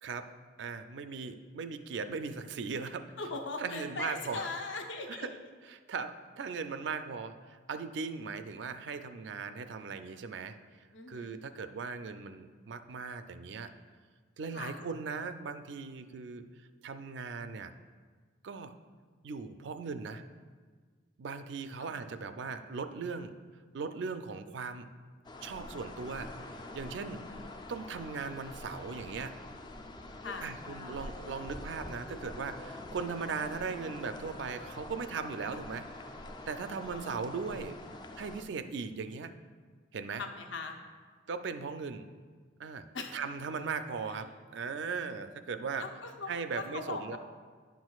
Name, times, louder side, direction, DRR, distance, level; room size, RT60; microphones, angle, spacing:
voice 1, 0.6-3.1 3.6-4.5 5.1-5.3 5.6-10.6 11.1-13.7 14.4-16.5 16.8-17.7 18.4-18.7 19.2-20.2 21.2-23.3 23.7-24.9 25.4-27.2 27.7-29.4 30.4-36.0 36.5-37.8 38.2-39.3 39.9-40.3 41.3-42.1 42.6-42.9 43.1-45.9 46.3-47.2, right 5 dB, 65° right, 10 dB, 0.4 m, -38 dB
voice 2, 3.2-5.3 10.9-11.4 14.5-14.8 27.1-27.4 30.2-30.5 36.9-37.1 40.2-40.8 42.9-43.1 45.8-46.3 46.6-47.2, left 3 dB, 70° left, 4 dB, 0.7 m, -39 dB
sound 1, 25.2-38.4, left 2 dB, 25° left, 0.3 m, -45 dB
10.5 x 6.2 x 2.3 m, 1.5 s
head